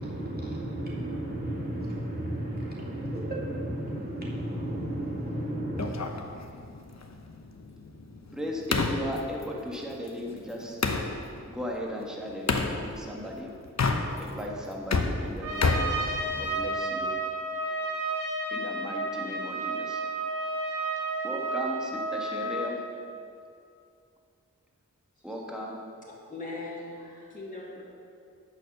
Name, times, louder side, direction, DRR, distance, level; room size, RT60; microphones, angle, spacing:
voice 1, 0.0-5.9, right 1 dB, 30° right, -5 dB, 2.6 m, -33 dB
sound 1, 5.8-11.1 12.5-12.7 13.6-14.4 14.7-16.7, left 3 dB, 55° left, 0.9 m, -30 dB
voice 2, 8.3-10.8 11.5-13.5 14.2-15.8 16.3-17.2 18.5-20.0 21.2-22.8 25.2-25.9, left 1 dB, ahead, -2 dB, 1.4 m, -36 dB
Trumpet, 15.4-22.8, right 2 dB, 90° right, 1.9 m, -31 dB
voice 3, 25.2-25.7 26.3-27.8, left 2 dB, 25° left, -7 dB, 2.3 m, -40 dB
9.3 x 6.5 x 6.7 m, 2.4 s
wide cardioid pair, 70°, 32 cm